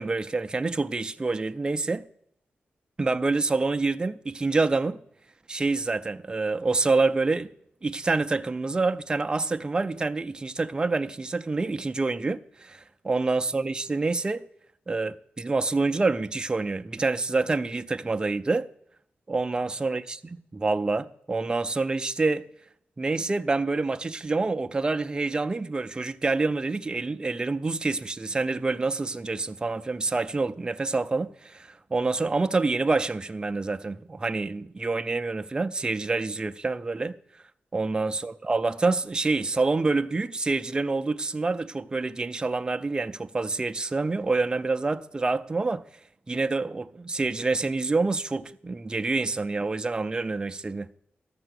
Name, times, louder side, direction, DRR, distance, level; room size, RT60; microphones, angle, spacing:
voice 1, 0.0-2.0 3.0-5.0 5.5-7.5 7.8-14.5 14.9-18.7 19.3-20.2 20.5-22.5 23.0-37.2 37.7-45.8 46.3-50.9, right 3 dB, 20° right, 0.4 m, -27 dB
13.0 x 6.8 x 6.3 m
wide cardioid pair, 155°, 4 cm